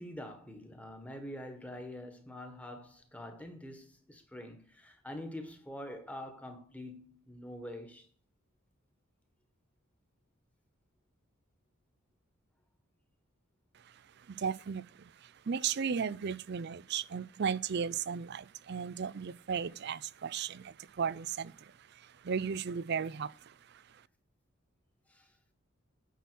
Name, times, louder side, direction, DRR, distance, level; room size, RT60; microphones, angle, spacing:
voice 1, 0.0-8.1 25.1-25.3, left 1 dB, 5° left, 1.5 m, -45 dB
voice 2, 14.3-23.5, right 6 dB, 50° right, 0.4 m, -35 dB
9.3 x 6.0 x 6.1 m
head